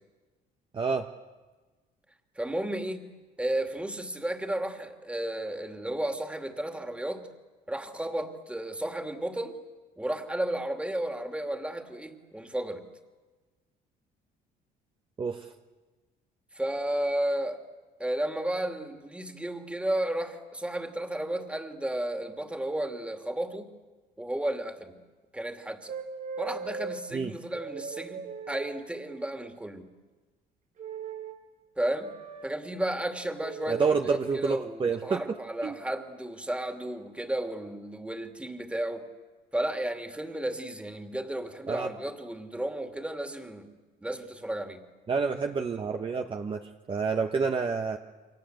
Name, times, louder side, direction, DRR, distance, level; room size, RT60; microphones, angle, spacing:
voice 1, 0.7-1.1 15.2-15.5 27.1-27.3 33.7-35.2 35.6-35.7 41.7-41.9 45.1-48.0, right 5 dB, 30° right, 4 dB, 1.2 m, -28 dB
voice 2, 2.4-3.1 3.4-7.3 7.7-9.6 10.0-12.8 16.5-17.6 18.0-23.7 24.2-24.9 25.3-25.9 26.4-29.9 31.8-32.1 32.4-39.1 39.5-43.7 44.0-44.8, right 1 dB, 5° right, 6 dB, 2.6 m, -33 dB
sound 1, 25.9-27.0 27.5-29.2 30.8-31.4 31.9-32.5 33.4-33.9 34.8-35.1, right 5 dB, 55° right, 4.5 m, -39 dB
29.0 x 24.5 x 8.0 m, 1.3 s
cardioid pair, 110°, 17 cm